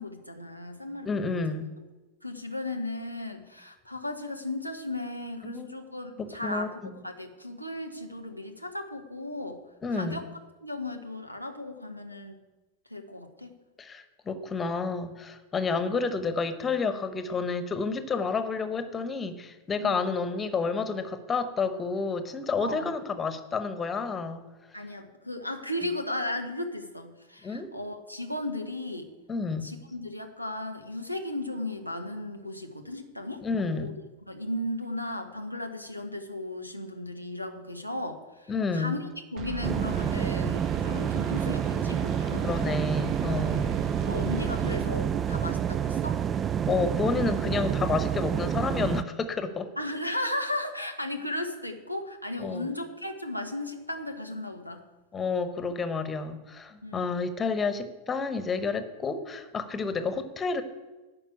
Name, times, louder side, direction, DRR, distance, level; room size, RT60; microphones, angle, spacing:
voice 1, 0.0-1.5 2.2-6.7 7.0-9.6 9.9-10.3 10.6-12.4 12.9-13.5 19.8-20.0 22.6-22.9 24.7-29.1 29.6-33.4 33.7-33.9 34.3-42.5 43.4-43.7 44.1-46.2 49.8-54.8 56.8-57.1, left 1 dB, 90° right, 7 dB, 1.1 m, -35 dB
voice 2, 1.0-1.7 5.4-5.7 6.2-6.7 9.8-10.2 13.8-24.5 27.4-27.7 29.3-29.7 33.4-33.9 38.5-39.0 42.4-43.8 46.7-49.7 52.4-52.7 55.1-60.6, left 4 dB, 20° left, 10 dB, 1.1 m, -30 dB
sound 1, 39.4-45.8, right 6 dB, 40° right, 1.3 m, -38 dB
sound 2, 39.6-49.0, right 8 dB, 25° right, 0.4 m, -28 dB
11.5 x 5.3 x 8.4 m, 1.2 s
figure-of-eight pair, 90°, 0 cm